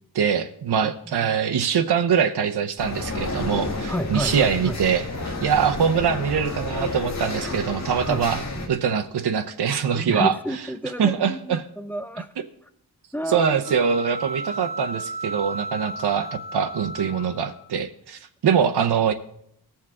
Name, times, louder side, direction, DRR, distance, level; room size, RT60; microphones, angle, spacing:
voice 1, 0.1-5.1 5.4-8.4 8.7-10.3 11.0-11.6 13.3-19.1, right 7 dB, 75° right, 7 dB, 0.7 m, -23 dB
voice 2, 0.8-1.4 3.9-4.8 8.1-8.2 9.9-12.3 13.1-13.6, equal, 5° left, 10 dB, 0.5 m, -31 dB
sound 1, 2.8-8.7, left 2 dB, 40° left, 1.6 m, -31 dB
sound 2, 13.6-17.7, right 1 dB, 50° right, 1.7 m, -34 dB
19.0 x 7.2 x 3.6 m, 0.71 s
wide cardioid pair, 155°, 40 cm